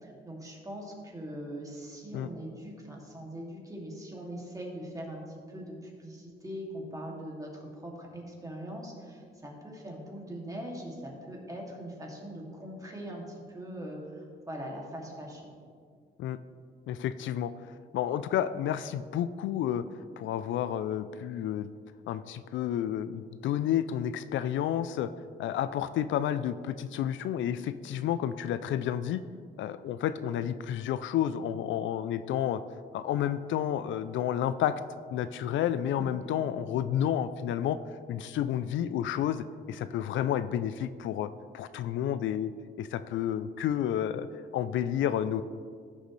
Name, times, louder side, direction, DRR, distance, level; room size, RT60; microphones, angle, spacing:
voice 1, 0.0-15.5 36.0-36.3, equal, 15° right, -2 dB, 2.4 m, -41 dB
voice 2, 16.9-17.5 17.9-19.8 20.2-21.7 22.1-25.1 25.4-29.2 29.6-32.6 32.9-34.8 35.1-37.8 38.1-41.3 41.5-42.5 42.8-44.3 44.5-45.4, left 10 dB, 75° left, 13 dB, 0.4 m, -30 dB
15.5 x 6.5 x 3.2 m, 2.2 s
cardioid pair, 90°, 20 cm